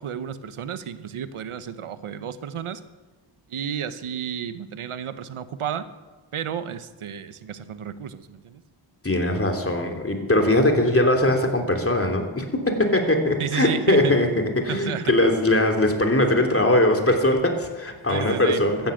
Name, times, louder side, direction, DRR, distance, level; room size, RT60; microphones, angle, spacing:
voice 1, 0.0-2.8 3.5-5.9 6.3-8.6 13.4-14.1 14.7-15.1 18.1-18.7, right 8 dB, 85° right, 13 dB, 1.0 m, -32 dB
voice 2, 9.0-14.3 14.5-18.8, left 1 dB, 25° left, 3 dB, 3.1 m, -21 dB
14.5 x 10.5 x 7.9 m, 1.2 s
cardioid pair, 45°, 49 cm